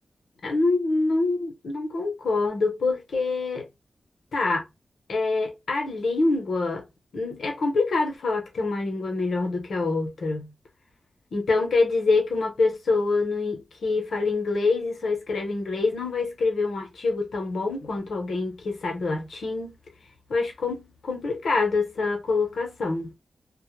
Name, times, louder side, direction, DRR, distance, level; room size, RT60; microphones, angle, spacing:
voice 1, 0.4-3.7 4.3-4.6 5.1-6.9 7.1-10.5 11.3-19.7 20.3-23.1, left 3 dB, 80° left, 0.8 m, -25 dB
2.1 x 2.0 x 3.0 m
wide cardioid pair, 90°, 0 cm